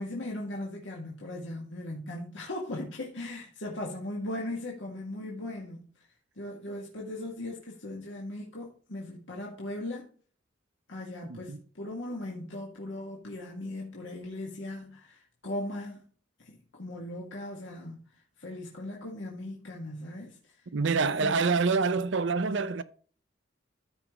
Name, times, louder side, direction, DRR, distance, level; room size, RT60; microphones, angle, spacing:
voice 1, 0.0-6.1 6.4-10.1 10.9-16.0 16.4-18.0 18.4-20.4 21.2-21.4, left 1 dB, 70° left, 1.8 m, -38 dB
voice 2, 11.3-11.6 20.7-22.8, right 4 dB, 65° right, 0.6 m, -26 dB
14.0 x 5.0 x 3.0 m
head